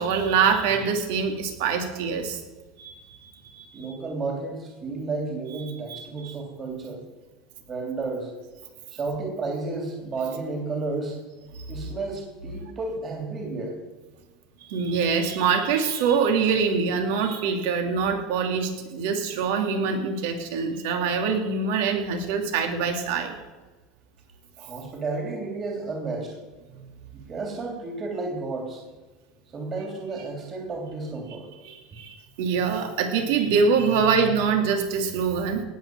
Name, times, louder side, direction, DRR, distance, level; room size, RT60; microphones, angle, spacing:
voice 1, 0.0-2.4 2.8-3.9 5.9-6.3 14.6-23.3 31.6-35.6, right 5 dB, 80° right, 5 dB, 2.5 m, -24 dB
voice 2, 3.7-7.0 7.7-8.3 8.9-11.2 11.7-13.8 24.6-26.4 27.1-28.8 29.5-31.5, right 3 dB, 30° right, 1 dB, 3.2 m, -32 dB
18.5 x 6.4 x 7.7 m, 1.2 s
supercardioid pair, 120°, 0 cm